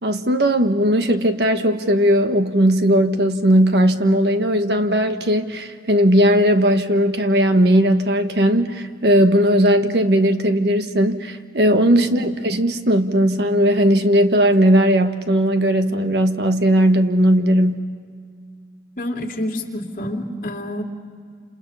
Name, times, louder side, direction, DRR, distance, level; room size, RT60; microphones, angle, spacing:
voice 1, 0.0-17.9, equal, 70° right, 7 dB, 1.4 m, -17 dB
voice 2, 19.0-20.8, left 1 dB, 50° left, 2 dB, 2.6 m, -28 dB
29.5 x 28.0 x 5.6 m, 2.1 s
head